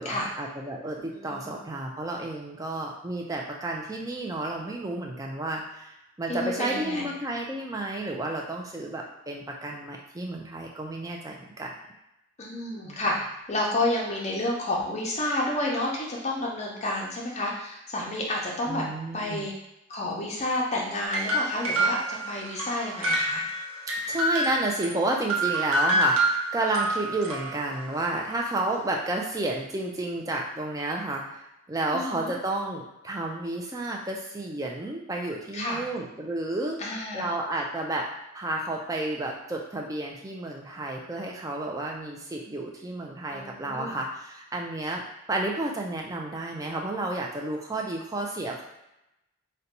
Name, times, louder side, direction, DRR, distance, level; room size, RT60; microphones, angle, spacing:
voice 1, 0.0-11.7 12.8-13.0 18.7-19.5 24.1-31.4 31.7-36.8 37.1-38.1 38.3-45.0 45.3-48.6, right 2 dB, 15° right, 0 dB, 0.3 m, -31 dB
voice 2, 1.2-1.6 6.3-7.0 12.4-18.8 19.1-19.5 19.9-23.4 31.9-32.3 35.5-35.8 36.8-37.2 43.3-44.0, left 1 dB, 30° left, -2 dB, 0.6 m, -30 dB
sound 1, 21.0-24.9 25.3-27.9, right 1 dB, 75° right, 0.7 m, -27 dB
2.6 x 2.2 x 4.1 m, 0.88 s
head